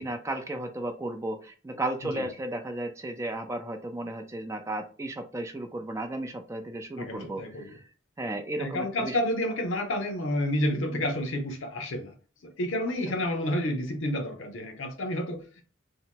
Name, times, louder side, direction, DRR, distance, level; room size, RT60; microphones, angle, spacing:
voice 1, 0.0-7.8 8.2-9.2 10.9-11.1, right 1 dB, 15° right, 0.4 m, -34 dB
voice 2, 7.0-7.8 8.6-12.1 12.4-15.6, left 1 dB, 85° left, 0.7 m, -30 dB
2.8 x 2.1 x 2.8 m
head